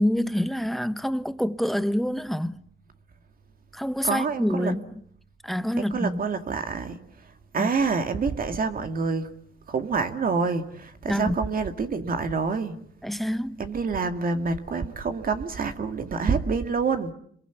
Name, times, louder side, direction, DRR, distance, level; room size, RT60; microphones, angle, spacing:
voice 1, 0.0-2.6 3.7-4.8 5.4-6.2 7.6-7.7 11.1-11.4 13.0-13.6, equal, ahead, 1.1 m, -26 dB
voice 2, 4.0-4.7 5.8-9.3 9.7-12.8 13.6-17.1, right 4 dB, 45° right, 2.3 m, -27 dB
28.0 x 22.0 x 8.3 m
cardioid pair, 90°, 20 cm